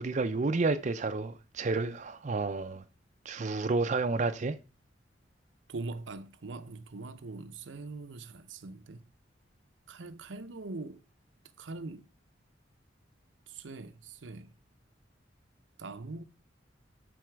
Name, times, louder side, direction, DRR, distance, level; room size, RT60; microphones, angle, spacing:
voice 1, 0.0-2.8 3.3-4.6, right 3 dB, 40° right, 0.5 m, -30 dB
voice 2, 5.7-9.0 9.9-11.0 11.6-12.1 13.5-14.5 15.8-16.2, right 3 dB, 80° right, 0.7 m, -42 dB
12.5 x 4.2 x 4.6 m
head